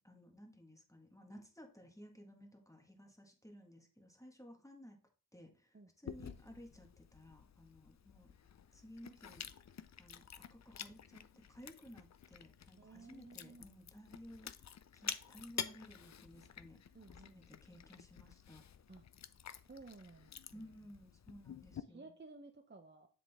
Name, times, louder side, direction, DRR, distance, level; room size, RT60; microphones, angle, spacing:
voice 1, 0.0-5.0 5.3-8.3 8.7-9.5 10.0-10.2 10.5-11.2 11.5-14.6 14.9-16.8 17.1-18.6 20.5-22.0, equal, 5° left, 3 dB, 1.5 m, -56 dB
voice 2, 5.7-6.2 12.8-13.7 16.9-17.4 18.9-19.0 19.7-20.7 21.9-23.1, right 3 dB, 25° right, 5 dB, 0.8 m, -56 dB
Chewing mastication, 6.1-21.8, left 8 dB, 40° left, 0.5 m, -50 dB
7.5 x 3.8 x 3.5 m, 0.39 s
cardioid pair, 45°, 43 cm